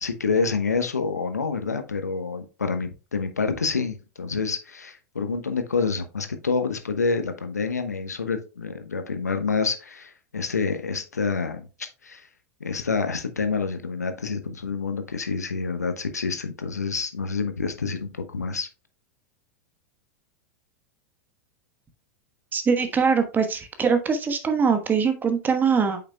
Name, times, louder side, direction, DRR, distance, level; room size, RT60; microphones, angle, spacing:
voice 1, 0.0-12.3 12.6-18.7, left 4 dB, 85° left, 9 dB, 1.0 m, -28 dB
voice 2, 22.5-26.0, right 5 dB, 20° right, 7 dB, 1.2 m, -22 dB
8.6 x 5.8 x 2.2 m, 0.32 s
figure-of-eight pair, 90°, 9 cm